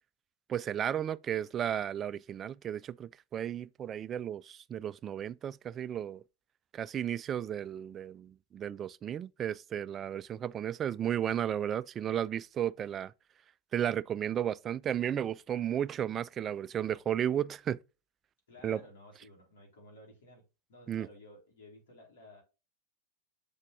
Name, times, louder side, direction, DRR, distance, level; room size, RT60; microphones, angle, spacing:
voice 1, 0.5-6.2 6.7-13.1 13.7-17.8 18.6-18.8 20.9-21.1, right 10 dB, 30° right, 0.3 m, -34 dB
voice 2, 18.5-20.4 20.7-22.4, left 1 dB, 70° left, 3.9 m, -54 dB
7.0 x 4.1 x 3.3 m
hypercardioid pair, 95°, 0 cm